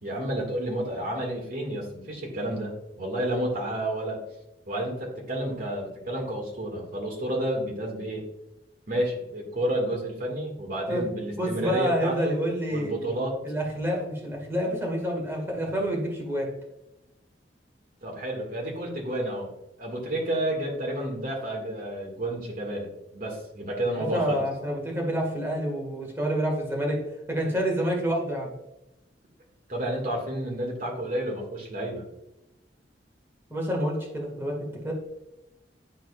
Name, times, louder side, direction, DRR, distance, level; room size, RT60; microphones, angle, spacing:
voice 1, 0.0-4.2 4.7-8.2 8.9-12.3 12.7-13.4 18.0-19.5 19.8-24.4 29.7-32.0, right 1 dB, 55° right, -1 dB, 2.1 m, -30 dB
voice 2, 11.4-13.1 13.4-16.5 24.1-27.0 27.3-28.5 33.5-34.9, equal, 15° right, -1 dB, 1.9 m, -28 dB
10.5 x 4.6 x 2.5 m, 0.92 s
head